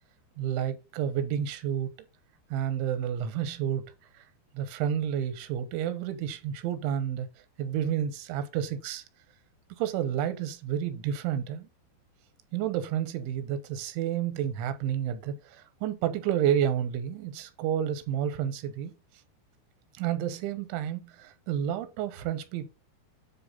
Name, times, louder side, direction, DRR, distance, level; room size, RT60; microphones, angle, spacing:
voice 1, 0.4-1.9 2.5-4.2 4.5-7.3 7.6-9.0 9.8-11.7 12.5-18.9 19.9-22.7, right 9 dB, 90° right, 3.2 m, -30 dB
9.4 x 3.5 x 5.4 m
omnidirectional pair, 5.2 m